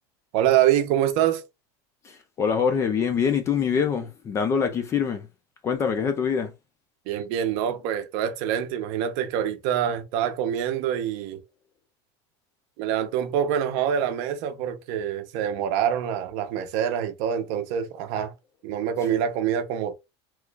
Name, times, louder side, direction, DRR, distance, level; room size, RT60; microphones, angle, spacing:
voice 1, 0.3-1.4 7.1-11.4 12.8-18.3 18.6-19.9, right 9 dB, 55° right, 0.7 m, -25 dB
voice 2, 2.0-5.3 5.6-6.5, left 6 dB, 20° left, 0.4 m, -24 dB
3.1 x 2.4 x 3.3 m
supercardioid pair, 165°, 14 cm